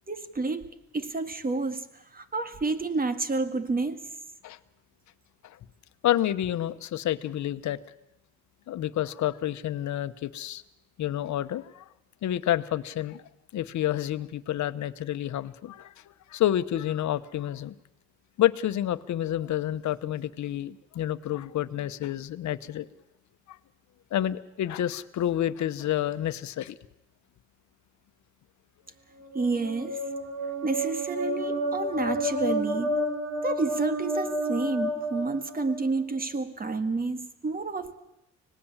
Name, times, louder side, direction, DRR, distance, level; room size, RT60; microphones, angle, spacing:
voice 1, 0.1-4.1 29.3-30.0 30.4-33.1 33.4-38.0, right 3 dB, 30° right, 10 dB, 1.9 m, -30 dB
voice 2, 6.0-7.8 8.7-10.6 11.0-11.8 12.2-13.2 13.5-15.9 16.3-17.7 18.4-22.9 23.5-23.6 24.1-26.8, left 12 dB, 70° left, 13 dB, 1.0 m, -29 dB
sound 1, 29.2-36.1, equal, 75° right, 3.0 m, -30 dB
25.5 x 18.5 x 7.3 m, 0.86 s
cardioid pair, 90°, 30 cm